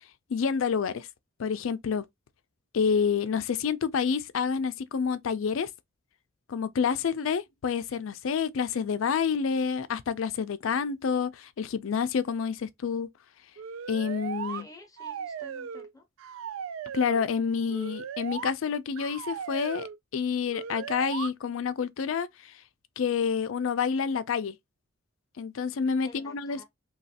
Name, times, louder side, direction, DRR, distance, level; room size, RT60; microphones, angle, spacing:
voice 1, 0.3-1.1 1.4-2.1 2.7-5.7 6.5-13.1 13.9-14.7 16.9-19.9 20.1-22.5 23.0-24.6 25.4-26.6, left 6 dB, 80° left, 0.4 m, -28 dB
sound 1, 13.6-14.6 15.0-15.9 16.2-17.2 17.7-18.5 19.0-20.0 20.5-21.3, right 7 dB, 80° right, 0.3 m, -37 dB
voice 2, 14.4-16.1 26.0-26.6, left 2 dB, 20° left, 0.6 m, -51 dB
3.1 x 2.3 x 2.7 m
head